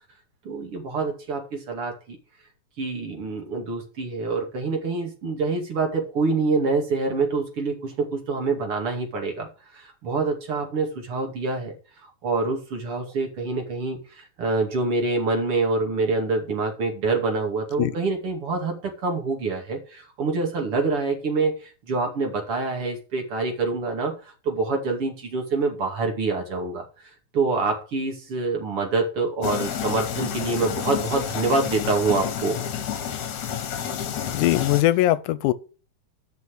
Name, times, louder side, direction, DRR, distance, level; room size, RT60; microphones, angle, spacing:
voice 1, 0.4-2.2 2.8-11.7 12.2-32.6, right 3 dB, 50° right, 3.2 m, -26 dB
sound 1, 29.4-34.8, left 8 dB, 70° left, 2.7 m, -30 dB
voice 2, 34.3-35.5, left 15 dB, 90° left, 2.2 m, -20 dB
11.0 x 6.3 x 6.2 m
omnidirectional pair, 3.5 m